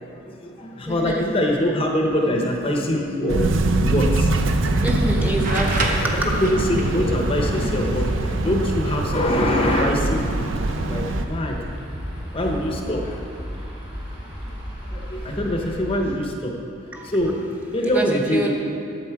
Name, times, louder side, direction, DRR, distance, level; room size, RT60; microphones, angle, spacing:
voice 1, 0.0-4.3 6.4-10.5 10.9-11.6 12.3-13.2 14.9-16.5 16.8-18.5, left 1 dB, 30° left, 1 dB, 0.8 m, -24 dB
voice 2, 0.9-1.2 4.8-6.1 16.9-17.2 17.8-18.5, right 1 dB, 10° right, -1 dB, 0.9 m, -26 dB
sound 1, 3.3-11.3, right 2 dB, 80° right, 0.6 m, -23 dB
sound 2, 4.7-16.2, equal, 25° right, 1.8 m, -34 dB
sound 3, 5.4-7.0 8.9-9.0 10.2-10.5, right 2 dB, 45° right, 1.0 m, -28 dB
10.5 x 7.3 x 4.7 m, 2.6 s
head